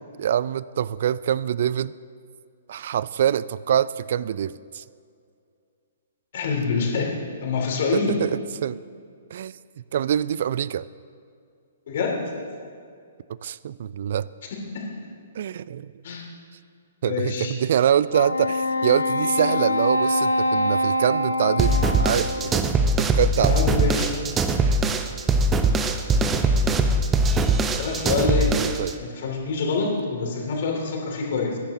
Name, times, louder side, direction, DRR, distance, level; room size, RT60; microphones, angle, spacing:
voice 1, 0.2-1.9 2.7-4.8 7.9-8.8 9.3-9.6 9.9-10.9 13.4-14.3 15.4-15.9 17.0-22.7 23.0-23.5 24.6-25.1 28.6-28.9, right 9 dB, 50° right, 19 dB, 0.3 m, -25 dB
voice 2, 6.3-7.1 7.4-8.2 11.9-12.3 14.7-14.9 16.0-16.2 17.0-17.5 23.4-24.1 27.7-28.5 29.0-31.6, left 4 dB, 50° left, 0 dB, 2.8 m, -26 dB
Wind instrument woodwind instrument, 18.1-22.7, left 1 dB, 80° left, 0.6 m, -24 dB
sound 1, 21.6-28.9, right 2 dB, 15° right, 0.7 m, -21 dB
19.5 x 10.5 x 3.0 m, 2.3 s
figure-of-eight pair, 120°, 0 cm